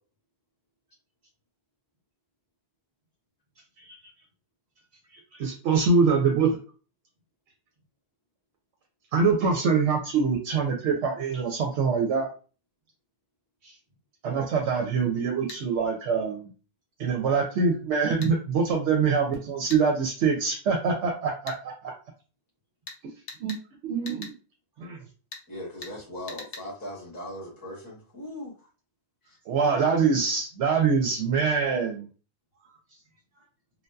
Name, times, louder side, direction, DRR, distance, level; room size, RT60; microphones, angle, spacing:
voice 1, 3.6-4.3 4.9-5.5 13.6-13.8 24.8-24.9 32.6-33.0 33.3-33.5, equal, 60° right, -2 dB, 1.1 m, -57 dB
voice 2, 5.4-6.6 9.1-12.3 14.2-16.5 17.0-21.9 23.4-23.6 23.8-24.3 24.8-25.0 29.5-32.1, right 5 dB, 85° right, 1 dB, 0.9 m, -24 dB
sound 1, 15.5-15.6 18.2-18.3 19.7-19.8 21.5-21.6 22.9-23.0 23.3-23.6 24.1-24.4 25.3-25.5 25.8-26.0 26.3-26.7, left 4 dB, 60° left, 0.8 m, -41 dB
voice 3, 25.5-28.5, left 1 dB, 20° left, -2 dB, 0.7 m, -39 dB
2.6 x 2.2 x 2.2 m, 0.36 s
omnidirectional pair, 1.1 m